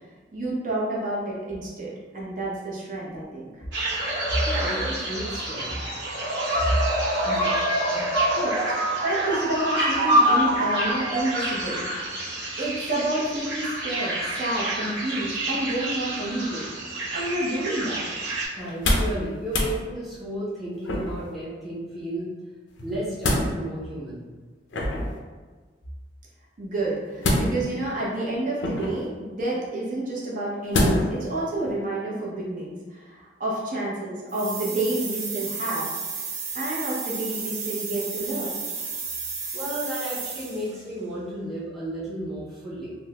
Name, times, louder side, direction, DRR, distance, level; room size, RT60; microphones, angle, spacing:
voice 1, 0.3-3.5 8.3-8.7 9.0-12.2 12.6-16.6 17.1-18.0 26.6-35.9 36.5-38.5, right 1 dB, 45° right, -6 dB, 0.7 m, -29 dB
sound 1, 3.7-18.5, right 1 dB, 70° right, 0.9 m, -26 dB
voice 2, 4.3-5.8 6.6-6.8 7.2-7.5 7.9-8.0 18.5-22.3 22.8-24.3 39.5-43.0, right 1 dB, ahead, -9 dB, 0.6 m, -32 dB
sound 2, 18.6-19.2 19.5-19.7 20.8-21.3 22.8-23.5 24.7-25.2 27.2-27.8 28.6-29.1 30.7-31.2 31.7-31.8, left 1 dB, 80° left, 0.5 m, -24 dB
sound 3, 34.3-40.7, right 5 dB, 90° right, 0.6 m, -33 dB
3.4 x 2.0 x 2.8 m, 1.4 s
head